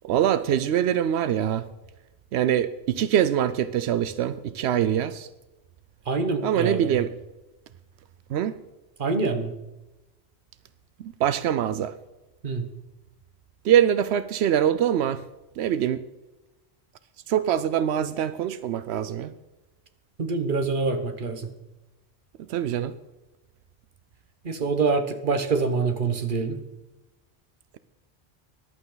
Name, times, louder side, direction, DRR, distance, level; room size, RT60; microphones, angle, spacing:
voice 1, 0.0-1.6 2.3-5.3 6.4-7.1 8.3-8.5 11.2-11.9 13.6-15.2 15.6-16.0 17.3-19.3 22.5-22.9, right 10 dB, 90° right, 14 dB, 0.8 m, -23 dB
voice 2, 6.1-7.0 9.0-9.5 12.4-12.6 20.2-21.5 24.4-26.6, right 4 dB, 55° right, 7 dB, 1.3 m, -25 dB
15.0 x 11.5 x 3.9 m, 1.0 s
omnidirectional pair, 1.1 m